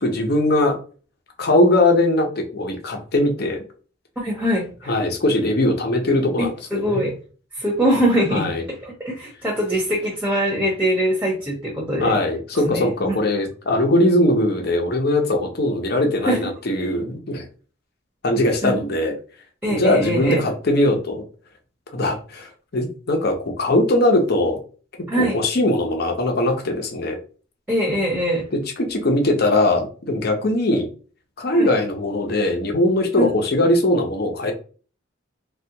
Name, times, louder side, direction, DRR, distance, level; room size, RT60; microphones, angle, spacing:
voice 1, 0.0-0.8 1.4-3.6 4.9-7.1 8.3-8.6 12.0-17.4 18.2-19.2 19.7-21.2 21.9-24.6 25.1-27.2 28.5-30.9 31.4-34.5, left 1 dB, 55° left, 3 dB, 0.7 m, -20 dB
voice 2, 4.2-4.9 6.4-7.1 7.6-12.2 12.6-13.1 16.2-16.4 18.6-18.8 19.6-20.4 25.1-25.4 27.7-28.4 31.5-31.7 33.2-33.3, equal, 10° right, -1 dB, 0.7 m, -22 dB
3.3 x 2.4 x 2.8 m, 0.39 s
head